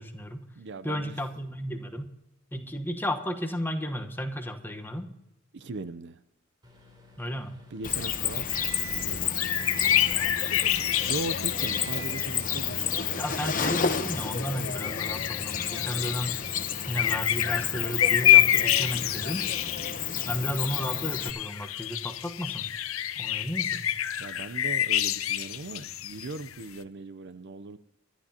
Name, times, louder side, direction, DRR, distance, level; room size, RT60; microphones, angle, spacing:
voice 1, 0.0-0.4 0.8-2.0 2.5-5.1 7.2-7.5 13.1-16.4 16.9-19.5 20.3-22.7 23.2-23.8, equal, 10° left, 1.2 m, -33 dB
voice 2, 0.6-1.1 5.5-6.2 7.7-8.6 9.0-9.7 11.1-13.8 24.2-27.8, right 3 dB, 60° right, 0.6 m, -39 dB
Microwave oven, 6.6-9.2 9.5-10.1 10.5-11.1 11.6-12.2, right 6 dB, 20° right, 3.5 m, -44 dB
Cricket, 7.8-21.3, left 7 dB, 40° left, 0.9 m, -31 dB
sound 1, 8.5-13.1 13.4-13.5 13.9-26.7, left 12 dB, 80° left, 0.7 m, -28 dB
24.0 x 11.5 x 2.9 m
head